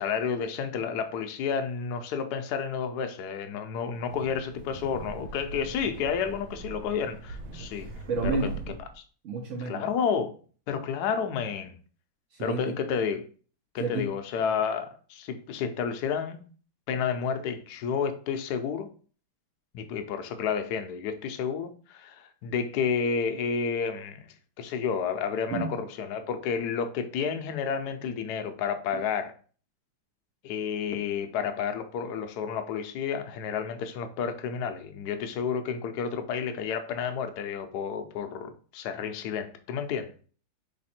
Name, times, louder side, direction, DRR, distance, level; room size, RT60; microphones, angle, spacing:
voice 1, 0.0-7.9 8.2-8.4 9.0-9.1 9.6-10.3 10.7-11.7 12.4-13.3 13.7-16.4 16.9-18.9 19.7-24.3 24.6-29.3 30.4-40.1, left 6 dB, 70° left, 8 dB, 1.0 m, -30 dB
Wind, 3.9-9.0, right 3 dB, 90° right, 1.6 m, -40 dB
voice 2, 8.1-8.7 9.2-9.8 12.3-12.8 13.8-14.0 25.5-25.8, right 3 dB, 70° right, 0 dB, 0.7 m, -31 dB
3.4 x 3.2 x 4.2 m, 0.42 s
omnidirectional pair, 2.2 m